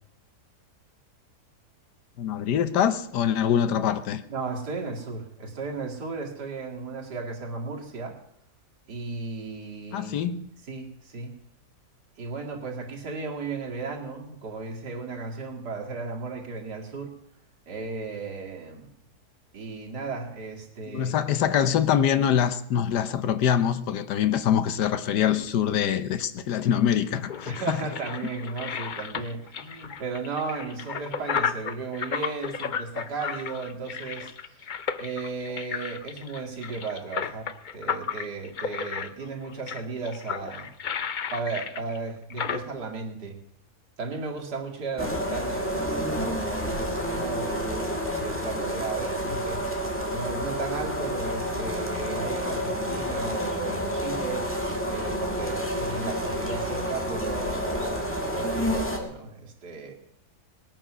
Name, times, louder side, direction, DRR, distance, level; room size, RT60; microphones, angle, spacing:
voice 1, 2.2-4.2 9.9-10.5 20.9-27.8, left 9 dB, 85° left, 1.5 m, -24 dB
voice 2, 4.3-8.2 8.9-10.3 10.7-11.3 12.2-17.1 17.7-18.9 19.5-21.1 27.4-40.7 41.3-43.4 44.0-49.6 50.1-54.5 54.9-59.9, right 4 dB, 85° right, 2.8 m, -35 dB
sound 1, 26.8-42.6, left 7 dB, 70° left, 0.4 m, -33 dB
sound 2, 45.0-59.0, equal, 10° left, 1.9 m, -29 dB
20.0 x 9.1 x 6.1 m
omnidirectional pair, 1.7 m